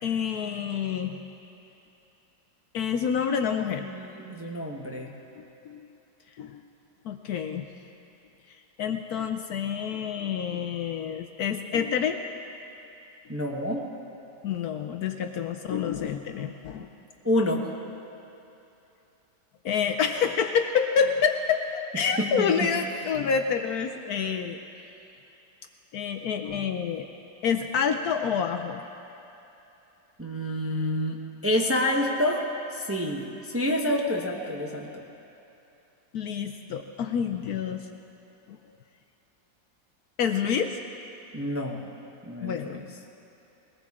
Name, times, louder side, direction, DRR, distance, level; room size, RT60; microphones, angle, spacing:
voice 1, 0.0-1.2 2.7-3.9 5.4-5.8 6.4-6.6 7.0-7.6 8.8-12.2 14.4-16.9 19.6-24.6 25.9-27.1 27.4-28.8 36.1-37.9 38.5-38.6 40.2-40.8 42.4-42.9, left 7 dB, 70° left, 6 dB, 1.0 m, -28 dB
voice 2, 3.8-5.1 13.3-13.8 17.2-17.6 21.9-22.7 30.2-32.4 32.7-35.0 41.3-41.8 42.3-42.8, left 1 dB, 10° right, -1 dB, 0.7 m, -28 dB
20.5 x 19.0 x 3.6 m, 2.9 s
omnidirectional pair, 1.9 m